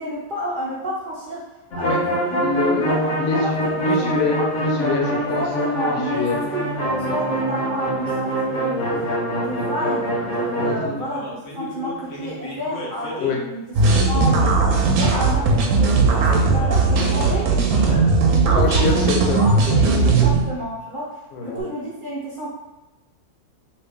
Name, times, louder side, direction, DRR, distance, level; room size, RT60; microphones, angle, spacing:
voice 1, 0.0-1.4 1.7-2.0 2.2-2.4 2.7-3.0 3.2-3.4 3.6-4.4 5.3-8.9 9.3-13.6 14.1-17.5 17.9-18.8 19.4-22.5, equal, 55° right, -6 dB, 0.6 m, -30 dB
sound 1, 1.7-13.3 13.8-18.0 18.2-18.3 18.6-19.0 21.5-21.6, right 1 dB, 60° left, 1.1 m, -26 dB
voice 2, 2.4-2.8 3.2-5.4 5.9-6.4 10.6-10.9 13.2-13.4 17.1-17.3 18.5-19.4 19.9-20.0 20.2-20.3 21.3-21.5, left 4 dB, 80° left, 0 dB, 1.3 m, -25 dB
sound 2, 13.7-20.4, right 4 dB, 80° right, 1.1 m, -17 dB
3.2 x 2.7 x 3.5 m, 1.1 s
omnidirectional pair, 1.6 m